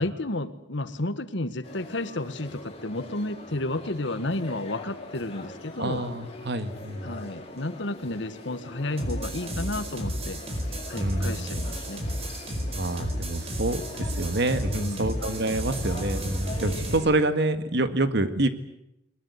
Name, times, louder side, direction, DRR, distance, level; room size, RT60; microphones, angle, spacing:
voice 1, 0.0-6.0 7.0-10.4 10.9-12.0 14.8-15.2, left 2 dB, 70° left, 11 dB, 1.7 m, -32 dB
sound 1, 1.6-17.2, left 2 dB, 35° left, 5.2 m, -42 dB
voice 2, 5.8-7.1 11.0-11.5 12.8-18.5, right 2 dB, 65° right, 10 dB, 2.0 m, -27 dB
sound 2, 9.0-17.0, equal, 35° right, 4.8 m, -32 dB
22.0 x 22.0 x 9.7 m, 0.83 s
head